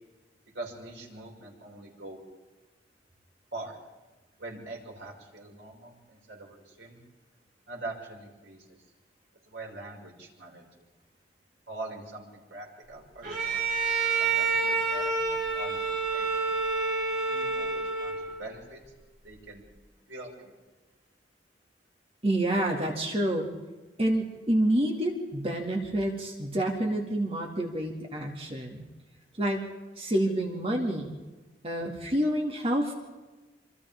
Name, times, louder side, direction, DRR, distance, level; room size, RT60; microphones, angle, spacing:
voice 1, 0.5-2.2 3.5-3.8 4.4-7.0 7.7-8.8 9.5-10.9 11.7-13.7 14.2-16.5 17.3-18.8 19.2-19.6 20.1-20.6, right 2 dB, 85° right, -2 dB, 6.0 m, -43 dB
Bowed string instrument, 13.2-18.5, right 4 dB, 65° right, 5.5 m, -28 dB
voice 2, 22.2-23.5 24.0-28.9 29.4-29.6 30.0-31.1 31.6-32.9, right 1 dB, 35° right, 1 dB, 2.4 m, -28 dB
27.5 x 26.0 x 3.7 m, 1.2 s
head